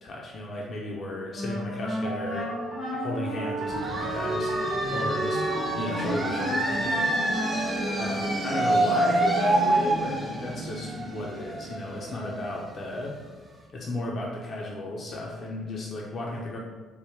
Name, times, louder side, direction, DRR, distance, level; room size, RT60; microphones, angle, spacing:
voice 1, 0.0-2.5 3.0-5.4 5.7-7.3 8.0-13.1 13.7-16.6, left 2 dB, 50° left, -3 dB, 0.6 m, -34 dB
Wind instrument woodwind instrument, 1.3-8.7, equal, 70° left, 1.0 m, -33 dB
sound 1, 1.9-8.1, right 3 dB, 75° right, 0.4 m, -37 dB
sound 2, 3.7-13.2, right 2 dB, 35° right, 1.0 m, -28 dB
3.5 x 2.1 x 3.1 m, 1.3 s
hypercardioid pair, 50°, 0 cm